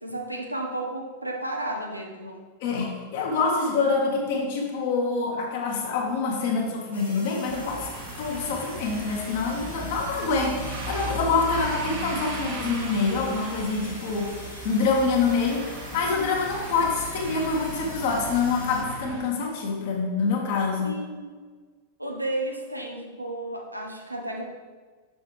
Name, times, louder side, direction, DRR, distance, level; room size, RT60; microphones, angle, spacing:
voice 1, 0.0-2.4 20.8-21.4 22.0-24.5, right 1 dB, 85° right, 2 dB, 0.8 m, -33 dB
voice 2, 2.6-7.9 8.2-14.3 14.6-21.0, left 4 dB, 50° left, 0 dB, 1.5 m, -26 dB
sound 1, 6.9-18.8, left 1 dB, 80° left, 2.3 m, -44 dB
sound 2, 7.4-19.2, right 2 dB, 50° right, 1.4 m, -36 dB
7.0 x 6.4 x 3.3 m, 1.4 s
figure-of-eight pair, 90°, 0 cm